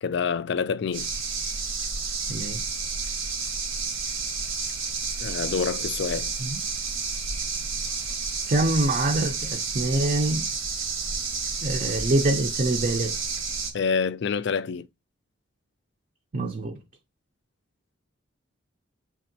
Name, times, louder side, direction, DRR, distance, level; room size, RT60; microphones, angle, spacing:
voice 1, 0.0-1.1 5.2-6.3 13.7-14.9, left 6 dB, 60° left, 0.3 m, -27 dB
sound 1, 0.9-13.7, right 4 dB, 85° right, 1.2 m, -30 dB
voice 2, 2.3-2.6 6.4-6.6 8.5-10.5 11.6-13.2 16.3-16.8, right 2 dB, 40° right, 0.5 m, -25 dB
5.1 x 3.5 x 2.6 m
head